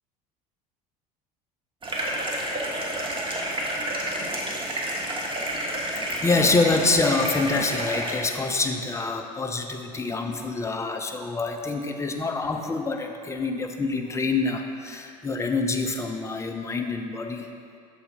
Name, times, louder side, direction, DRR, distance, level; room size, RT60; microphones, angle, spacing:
sound 1, 1.8-8.1, right 1 dB, 25° right, 1.1 m, -29 dB
voice 1, 5.9-17.5, left 3 dB, 15° left, 4 dB, 0.5 m, -26 dB
6.9 x 3.9 x 4.2 m, 2.4 s
figure-of-eight pair, 65°, 20 cm